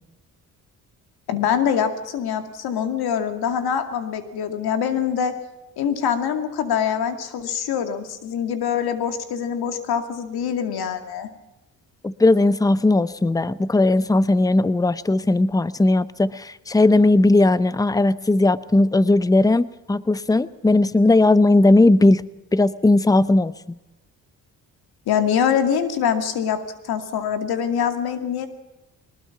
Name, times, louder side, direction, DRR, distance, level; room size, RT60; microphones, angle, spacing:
voice 1, 1.3-5.3 5.8-11.3 25.1-26.6 26.8-28.5, left 8 dB, 85° left, 8 dB, 2.4 m, -24 dB
voice 2, 12.0-22.2 22.5-23.8, left 2 dB, 10° left, 16 dB, 0.7 m, -17 dB
22.0 x 20.0 x 5.9 m, 0.98 s
cardioid pair, 90°, 37 cm